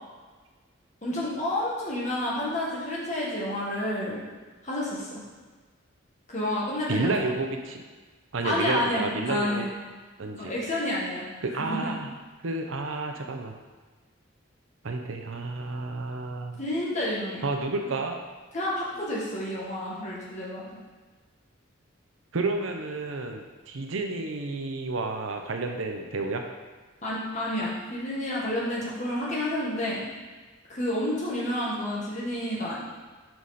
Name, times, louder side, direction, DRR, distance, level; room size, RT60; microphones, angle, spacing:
voice 1, 1.0-4.2 4.6-5.2 6.3-7.1 8.4-9.7 10.4-11.2 11.5-11.9 16.6-17.4 18.5-20.8 27.0-30.0 30.7-32.8, left 1 dB, 35° left, -6 dB, 1.6 m, -30 dB
voice 2, 6.9-7.8 8.3-9.6 10.2-10.5 11.4-12.1 12.4-13.5 14.8-16.6 17.4-18.2 22.3-26.4, right 3 dB, 80° right, 3 dB, 0.7 m, -30 dB
6.1 x 4.8 x 4.1 m, 1.4 s
head